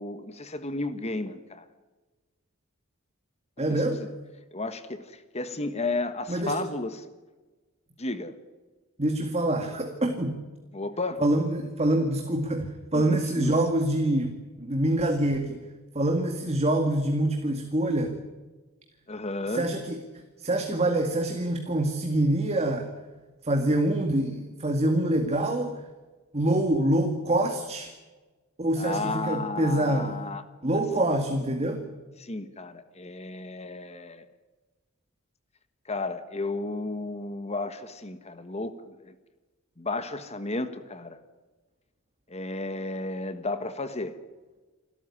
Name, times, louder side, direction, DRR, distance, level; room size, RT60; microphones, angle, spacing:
voice 1, 0.0-1.6 3.7-4.0 4.5-7.0 8.0-8.4 10.7-11.2 12.9-13.5 19.1-19.7 28.8-30.4 32.2-34.3 35.9-39.1 39.8-41.2 42.3-44.1, left 2 dB, 30° left, 11 dB, 1.4 m, -33 dB
voice 2, 3.6-4.0 6.3-6.6 9.0-10.4 11.2-15.6 15.9-18.2 19.5-20.0 20.4-22.9 23.4-25.8 26.3-27.9 28.6-30.1 30.6-31.9, right 1 dB, 30° right, 5 dB, 2.0 m, -25 dB
28.5 x 13.0 x 9.9 m, 1.2 s
head